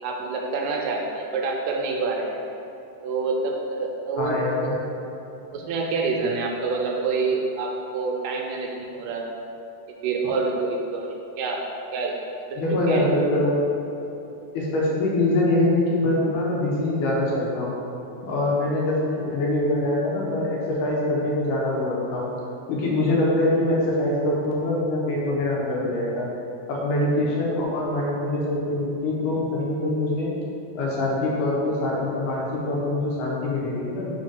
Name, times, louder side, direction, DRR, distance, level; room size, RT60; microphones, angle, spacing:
voice 1, 0.0-2.4 3.0-4.8 5.5-9.4 10.0-12.2 12.5-12.6 12.9-13.1 26.8-26.9, right 4 dB, 75° right, 0 dB, 1.8 m, -27 dB
voice 2, 4.2-4.8 5.5-5.6 12.6-13.6 14.5-17.7 18.2-22.3 22.7-26.3 26.7-30.3 30.8-34.1, left 1 dB, 85° left, -4 dB, 2.5 m, -24 dB
4.9 x 4.0 x 5.0 m, 2.8 s
omnidirectional pair, 3.6 m